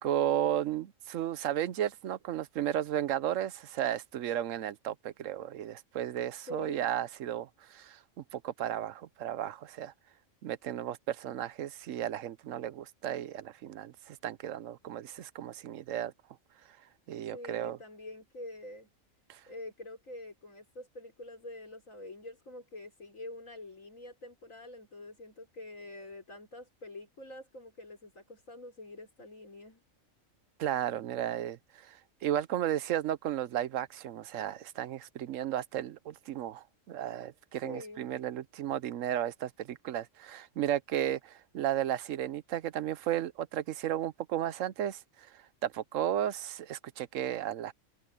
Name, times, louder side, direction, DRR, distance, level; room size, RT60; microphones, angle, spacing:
voice 1, 0.0-8.0 8.3-9.9 10.4-16.1 17.1-17.8 19.3-19.4 30.6-47.7, right 11 dB, 75° right, 1.0 m, -34 dB
voice 2, 6.5-6.9 17.3-18.9 19.5-29.8 37.6-38.1, left 1 dB, 85° left, 5.0 m, -46 dB
omnidirectional pair, 1.3 m